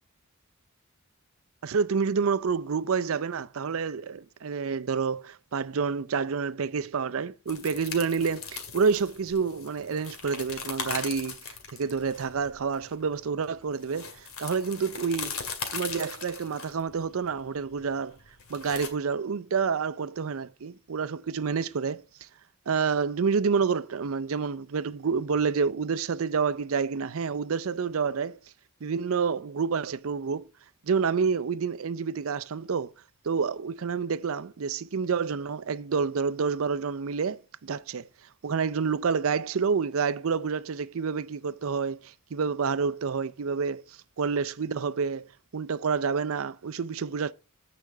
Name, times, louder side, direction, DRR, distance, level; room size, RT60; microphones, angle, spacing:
voice 1, 1.6-11.4 11.7-15.4 15.7-18.2 18.5-22.0 22.7-28.4 28.8-30.5 30.8-32.9 33.2-38.1 38.4-45.3 45.5-47.3, right 5 dB, 65° right, 0.5 m, -28 dB
sound 1, 7.5-18.9, left 5 dB, 75° left, 2.1 m, -39 dB
15.0 x 5.1 x 3.4 m
head